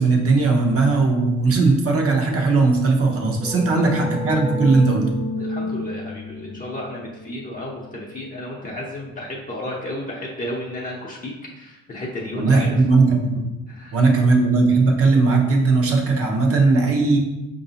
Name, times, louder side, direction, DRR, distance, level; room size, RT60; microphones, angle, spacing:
voice 1, 0.0-5.1 12.3-13.5 13.9-17.2, right 3 dB, 50° right, 1 dB, 0.8 m, -18 dB
sound 1, 2.8-8.3, left 2 dB, 90° right, 1.2 m, -31 dB
voice 2, 3.4-3.9 5.4-12.8 13.7-14.0, left 1 dB, 30° left, -3 dB, 0.7 m, -33 dB
4.7 x 2.7 x 2.8 m, 1.0 s
cardioid pair, 90°, 30 cm